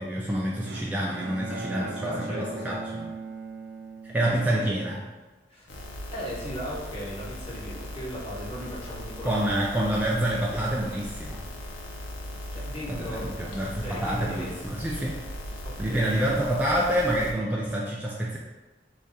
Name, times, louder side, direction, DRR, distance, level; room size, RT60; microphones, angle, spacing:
voice 1, 0.0-3.1 4.0-5.0 9.2-11.4 12.9-15.2 15.8-18.4, right 1 dB, 10° right, -4 dB, 0.3 m, -27 dB
Bowed string instrument, 0.7-4.9, right 3 dB, 80° right, 0.4 m, -39 dB
voice 2, 1.5-2.8 4.5-4.6 5.5-5.7 6.1-9.7 12.5-13.4 13.8-14.7 15.6-16.4, equal, 35° left, -6 dB, 1.1 m, -37 dB
sound 1, 5.7-17.3, left 1 dB, 85° left, 0.6 m, -39 dB
4.7 x 2.7 x 2.2 m, 1.2 s
head